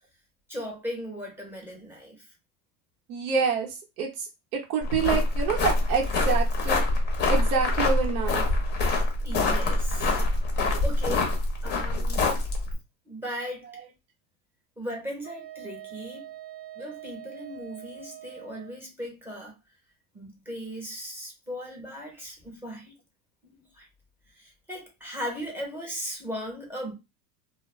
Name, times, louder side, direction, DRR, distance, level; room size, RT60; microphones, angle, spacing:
voice 1, 0.5-2.2 9.2-10.2 10.8-11.4 11.6-12.5 13.1-13.7 14.8-16.3 16.7-19.5 20.1-22.9 23.4-23.9 24.3-26.9, equal, 5° right, 0.9 m, -37 dB
voice 2, 3.1-4.3 4.5-6.8 7.3-8.4, right 5 dB, 70° right, 1.1 m, -27 dB
sound 1, 4.8-12.7, left 2 dB, 25° left, 0.7 m, -25 dB
Wind instrument woodwind instrument, 15.2-18.8, right 12 dB, 35° right, 0.5 m, -44 dB
2.2 x 2.2 x 3.1 m
supercardioid pair, 130°, 45 cm